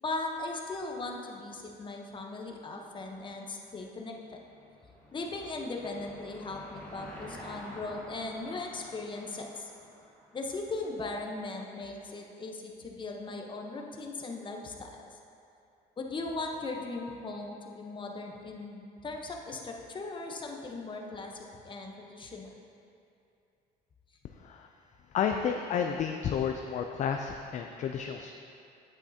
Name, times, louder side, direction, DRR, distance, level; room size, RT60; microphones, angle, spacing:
voice 1, 0.0-4.1 5.1-9.7 10.3-15.2 16.0-22.5, left 3 dB, 30° left, 1 dB, 0.9 m, -38 dB
Car passing by / Engine, 4.0-10.9, equal, 10° left, 1.4 m, -49 dB
voice 2, 25.1-28.3, left 7 dB, 45° left, 4 dB, 0.4 m, -31 dB
8.6 x 8.0 x 2.8 m, 2.6 s
cardioid pair, 110°, 17 cm